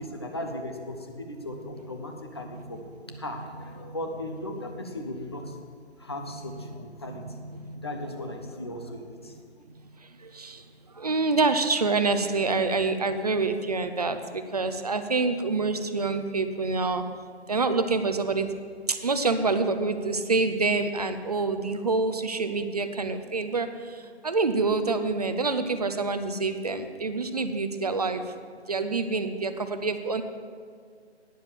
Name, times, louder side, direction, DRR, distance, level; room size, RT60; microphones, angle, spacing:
voice 1, 0.0-2.8 3.1-5.6 6.0-7.3 7.8-9.4, left 1 dB, 25° left, 3 dB, 0.6 m, -37 dB
voice 2, 1.5-1.9 2.4-2.8 3.1-3.2 3.6-4.0 4.2-4.8 5.4-5.5 6.3-8.6 10.0-10.6 10.9-17.0 17.5-18.5 18.9-28.2 28.7-30.2, right 3 dB, 35° right, 9 dB, 0.6 m, -27 dB
10.0 x 6.5 x 7.1 m, 2.1 s
figure-of-eight pair, 150°, 34 cm